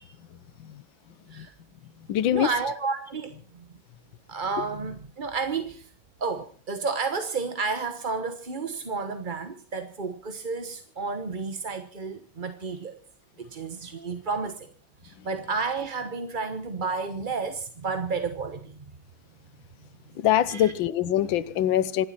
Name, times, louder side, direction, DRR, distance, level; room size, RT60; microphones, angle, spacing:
voice 1, 0.2-1.5 1.8-2.5 15.2-15.3 20.1-22.1, left 11 dB, 75° left, 1.7 m, -25 dB
voice 2, 2.3-3.7 4.3-5.9 6.2-13.0 13.4-14.7 15.0-18.8 20.5-20.7, right 4 dB, 30° right, 1.0 m, -31 dB
26.5 x 12.0 x 4.2 m
omnidirectional pair, 2.1 m